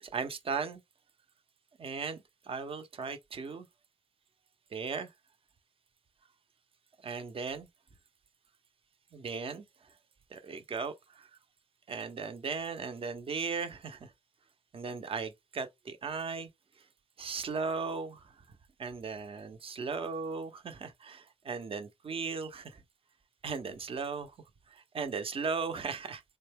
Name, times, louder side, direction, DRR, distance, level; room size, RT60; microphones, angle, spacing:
voice 1, 0.0-0.8 1.8-3.6 4.7-5.1 7.0-7.7 9.1-9.6 10.3-11.3 11.9-14.1 14.7-16.5 17.2-18.3 18.8-22.8 23.4-24.3 24.7-26.2, right 5 dB, 45° right, 0.8 m, -37 dB
3.8 x 2.2 x 3.4 m
cardioid pair, 80°, 13 cm